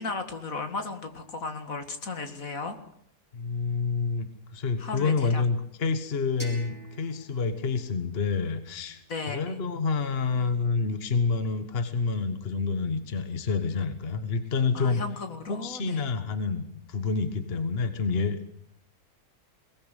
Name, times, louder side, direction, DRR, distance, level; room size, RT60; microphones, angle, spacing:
voice 1, 0.0-2.8 4.8-5.4 9.1-9.6 14.7-16.0, left 3 dB, 65° left, 7 dB, 2.4 m, -35 dB
voice 2, 3.3-15.0 15.5-18.4, left 4 dB, 40° left, 9 dB, 1.6 m, -28 dB
sound 1, 6.4-9.2, right 1 dB, 5° left, 6.2 m, -48 dB
22.0 x 18.5 x 8.2 m, 0.69 s
omnidirectional pair, 1.6 m